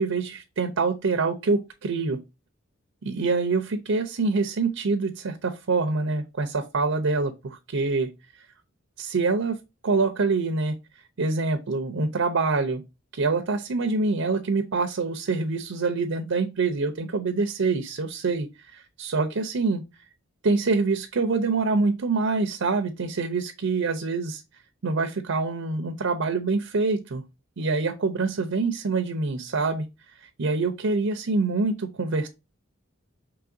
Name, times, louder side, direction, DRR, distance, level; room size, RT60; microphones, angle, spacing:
voice 1, 0.0-2.2 3.0-8.1 9.0-10.7 11.2-12.8 13.1-19.8 20.4-24.4 24.8-27.2 27.6-29.9 30.2-32.3, right 3 dB, 75° right, 0.6 m, -25 dB
4.7 x 3.2 x 2.5 m
head